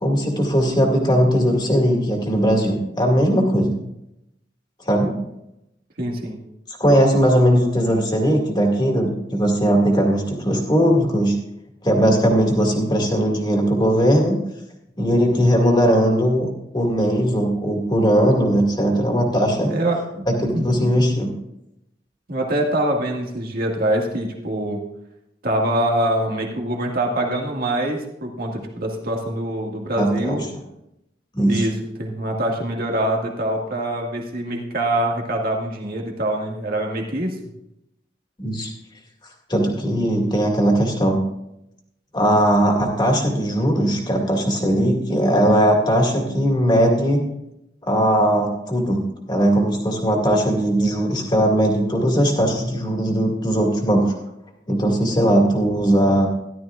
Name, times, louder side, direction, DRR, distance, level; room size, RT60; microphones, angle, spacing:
voice 1, 0.0-3.8 4.9-5.2 6.7-11.4 11.8-14.4 15.0-16.5 16.7-19.7 20.3-21.3 30.0-30.4 31.3-31.6 38.4-38.7 39.5-41.2 42.1-47.2 47.9-54.1 54.7-56.3, equal, 25° left, 1 dB, 2.2 m, -19 dB
voice 2, 6.0-6.4 19.6-20.3 20.5-20.8 22.3-24.8 25.4-30.4 31.5-31.7 32.0-37.4, right 1 dB, 55° right, 0 dB, 1.9 m, -24 dB
14.0 x 12.0 x 2.5 m, 0.84 s
head